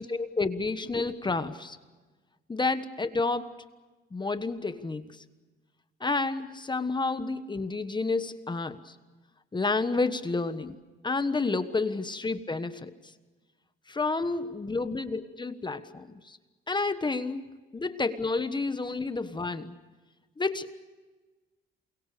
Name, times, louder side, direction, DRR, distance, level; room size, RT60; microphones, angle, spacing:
voice 1, 0.0-1.8 2.5-3.5 4.1-5.1 6.0-8.9 9.5-10.8 11.0-12.9 13.9-16.4 16.7-17.5 17.7-19.7 20.4-20.7, left 3 dB, 20° left, 11 dB, 1.3 m, -30 dB
28.5 x 23.0 x 6.8 m, 1.3 s
cardioid pair, 90°, 20 cm